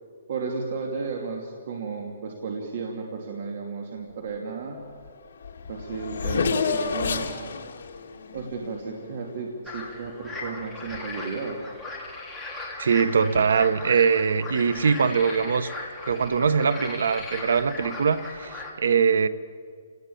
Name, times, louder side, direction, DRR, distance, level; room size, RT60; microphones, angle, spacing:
voice 1, 0.3-4.8 5.7-7.4 8.3-11.6, right 4 dB, 50° right, 1 dB, 2.7 m, -33 dB
Race car auto racing / Accelerating revving vroom, 5.1-5.2 5.4-9.4, left 5 dB, 65° left, 2.6 m, -30 dB
sound 1, 9.7-18.7, left 3 dB, ahead, 3.0 m, -38 dB
voice 2, 12.8-15.7 16.0-19.3, right 6 dB, 85° right, 13 dB, 1.2 m, -22 dB
29.0 x 19.0 x 8.6 m, 2.1 s
hypercardioid pair, 175°, 0 cm